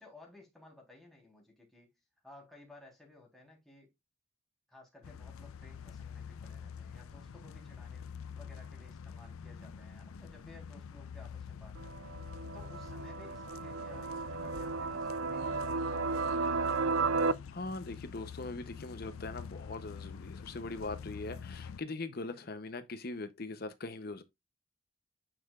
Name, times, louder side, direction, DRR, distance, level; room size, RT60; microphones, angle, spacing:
voice 1, 0.0-3.9 4.7-8.1 8.3-17.1, left 2 dB, ahead, 3.4 m, -57 dB
sound 1, 5.0-21.8, left 6 dB, 80° left, 0.5 m, -46 dB
sound 2, 11.8-17.3, right 4 dB, 70° right, 0.5 m, -34 dB
voice 2, 17.5-24.2, left 3 dB, 45° left, 0.7 m, -41 dB
9.2 x 5.8 x 2.4 m
head